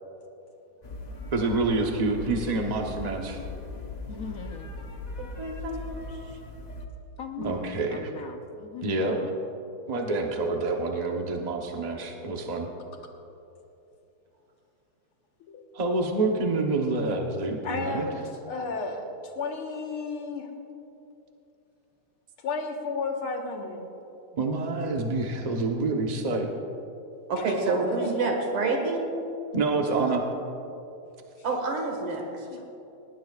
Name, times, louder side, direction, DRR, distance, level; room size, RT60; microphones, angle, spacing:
sound 1, 0.8-6.9, left 3 dB, 45° left, 0.5 m, -39 dB
voice 1, 1.3-3.4 7.4-8.1 8.8-9.2 9.9-12.7 15.7-18.1 24.3-26.5 29.5-30.2, right 3 dB, 45° right, 1 dB, 0.5 m, -27 dB
voice 2, 4.1-4.7 7.2-8.9 9.2-9.3, left 7 dB, 60° left, 4 dB, 0.9 m, -40 dB
voice 3, 5.2-5.8 6.1-6.4 27.3-29.0 31.4-32.4, right 3 dB, 80° right, 1 dB, 2.7 m, -28 dB
voice 4, 15.4-15.7 17.6-20.5 22.4-23.9 27.4-28.9 31.4-31.5 31.9-32.2 32.5-32.7, left 4 dB, 85° left, 2 dB, 2.3 m, -34 dB
19.0 x 18.5 x 2.4 m, 2.9 s
omnidirectional pair, 2.3 m